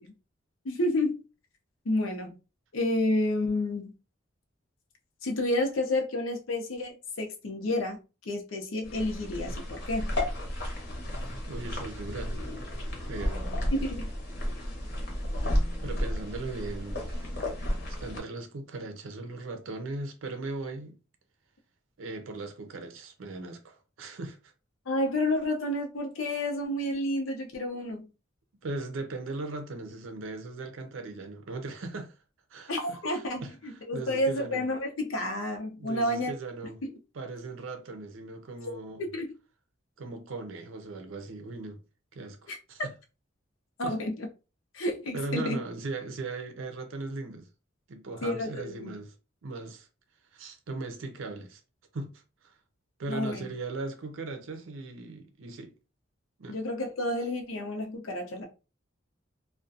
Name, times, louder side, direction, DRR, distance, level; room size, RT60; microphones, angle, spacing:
voice 1, 0.6-1.2 1.9-2.4 2.7-3.9 5.2-10.1 13.7-14.1 24.9-28.1 32.7-36.3 39.1-39.3 42.5-42.6 43.8-44.3 44.7-45.6 48.2-48.9 53.1-53.5 56.5-58.5, left 1 dB, 90° left, 0.6 m, -30 dB
sound 1, 8.8-18.2, left 1 dB, 55° left, 0.8 m, -32 dB
voice 2, 11.5-12.4 13.1-13.7 15.8-17.4 17.9-21.0 22.0-24.5 28.6-32.1 32.5-34.6 35.8-36.8 37.1-39.1 40.0-41.8 42.1-42.9 43.8-44.0 45.1-47.5 47.9-49.1 49.4-49.9 50.3-51.6 51.9-52.1 52.4-52.5 53.0-55.7 56.4-56.6, right 3 dB, 85° right, 0.5 m, -38 dB
2.4 x 2.2 x 2.5 m
head